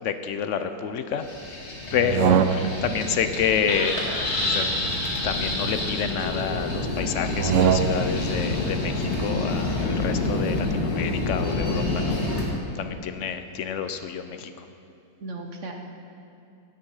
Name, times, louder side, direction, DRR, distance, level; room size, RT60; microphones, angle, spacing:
voice 1, 0.0-1.2 1.9-4.0 4.5-4.6 5.2-14.5, left 7 dB, 70° left, 9 dB, 0.7 m, -29 dB
sound 1, 1.2-12.4, left 2 dB, 40° left, 2.0 m, -27 dB
sound 2, 1.9-3.0 4.3-5.9 7.3-8.3, right 8 dB, 80° right, 0.6 m, -25 dB
voice 2, 7.0-7.5 15.2-15.7, right 2 dB, 50° right, 2 dB, 1.1 m, -37 dB
13.5 x 8.8 x 5.6 m, 2.7 s
omnidirectional pair, 1.8 m